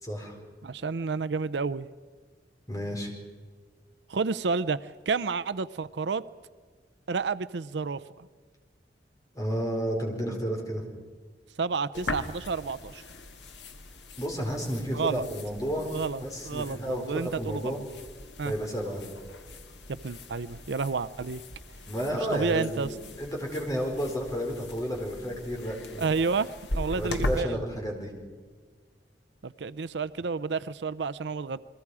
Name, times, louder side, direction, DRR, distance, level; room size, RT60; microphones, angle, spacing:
voice 1, 0.0-0.4 2.7-3.1 9.3-10.8 14.2-15.9 16.2-17.8 18.4-19.0 21.9-26.1 26.9-28.1, equal, 20° left, 1 dB, 4.3 m, -32 dB
voice 2, 0.6-1.9 4.1-6.2 7.1-8.0 11.6-13.0 14.9-15.3 15.9-17.8 18.4-18.5 19.9-21.4 22.2-22.9 26.0-27.6 29.4-31.6, right 4 dB, 75° right, 15 dB, 0.6 m, -30 dB
sound 1, 11.9-27.4, left 1 dB, 80° left, 1.6 m, -40 dB
30.0 x 22.0 x 4.9 m, 1.5 s
head